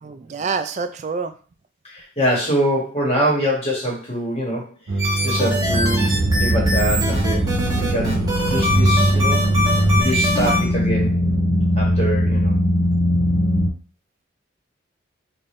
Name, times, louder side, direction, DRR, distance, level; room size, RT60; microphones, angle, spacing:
voice 1, 0.0-1.3 10.0-10.1, right 5 dB, 35° right, 9 dB, 0.3 m, -27 dB
voice 2, 1.8-4.7 5.2-6.1 6.4-9.5 10.0-11.2 11.8-12.5, equal, 30° left, -3 dB, 1.3 m, -24 dB
sound 1, 4.9-10.0, right 2 dB, 85° right, 0.6 m, -21 dB
sound 2, 5.0-10.6, left 1 dB, 20° right, 1.1 m, -23 dB
sound 3, 5.6-13.7, equal, 45° left, 0.8 m, -21 dB
3.3 x 2.5 x 4.2 m, 0.40 s
head